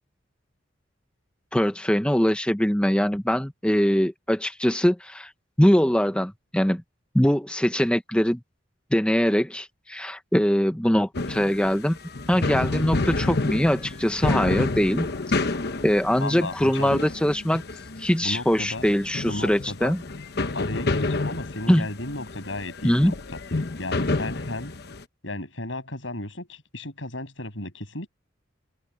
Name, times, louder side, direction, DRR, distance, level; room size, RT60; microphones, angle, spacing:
voice 1, 1.5-5.3 5.6-6.8 7.1-8.4 8.9-12.0 12.3-15.1 15.8-17.6 18.0-20.0 21.7-21.9 22.8-23.1, equal, 5° left, 0.9 m, -22 dB
sound 1, 11.1-25.0, left 2 dB, 60° left, 1.1 m, -29 dB
voice 2, 16.2-17.0 18.2-18.8 19.3-20.0 20.5-23.1 23.8-24.7 25.2-28.1, left 2 dB, 85° left, 7.0 m, -34 dB
open air
head